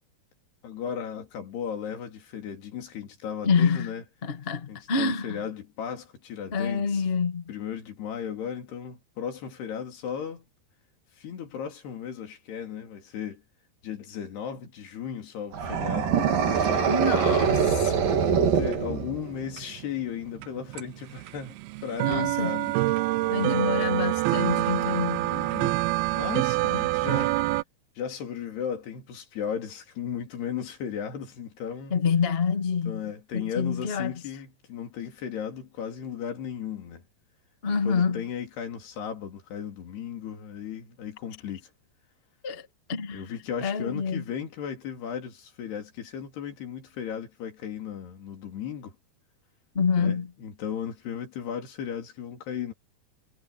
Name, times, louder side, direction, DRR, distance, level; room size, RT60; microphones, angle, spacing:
voice 1, 0.6-4.0 4.7-7.1 7.5-10.5 11.2-13.4 13.8-17.3 18.3-22.8 25.2-25.8 26.1-27.4 28.0-32.0 32.9-37.0 37.9-41.7 43.1-48.9 50.0-52.7, left 8 dB, 90° left, 5.2 m, -36 dB
voice 2, 3.4-3.9 4.2-5.4 6.5-7.5 16.9-18.0 22.0-22.6 23.3-25.3 26.6-27.0 31.9-34.1 37.6-38.2 42.4-43.2 43.6-44.2 49.7-50.3, left 5 dB, 55° left, 0.6 m, -27 dB
sound 1, 15.5-19.4, right 7 dB, 60° right, 4.2 m, -24 dB
sound 2, 16.5-19.8 20.1-27.6, right 19 dB, 80° right, 2.5 m, -27 dB
omnidirectional pair, 4.6 m